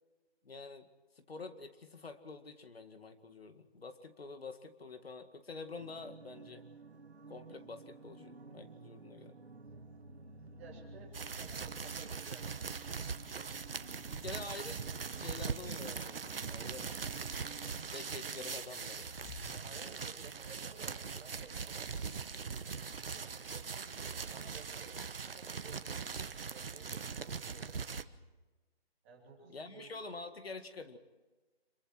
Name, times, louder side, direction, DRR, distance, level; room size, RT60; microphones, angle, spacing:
voice 1, 0.4-0.9 1.2-6.6 7.3-9.4 14.1-16.9 17.9-19.1 29.5-31.0, left 3 dB, 70° left, 8 dB, 2.1 m, -47 dB
sound 1, 5.8-18.5, right 4 dB, 90° right, 2.1 m, -54 dB
sound 2, 9.7-28.3, left 2 dB, 25° left, 1.9 m, -59 dB
voice 2, 10.6-13.5 19.5-21.9 22.9-25.0 25.3-26.0 26.5-28.0 29.0-29.9, right 4 dB, 15° right, -3 dB, 3.0 m, -56 dB
sound 3, 11.1-28.0, right 5 dB, 60° right, 1.2 m, -41 dB
26.5 x 23.5 x 4.7 m, 1.3 s
hypercardioid pair, 175°, 31 cm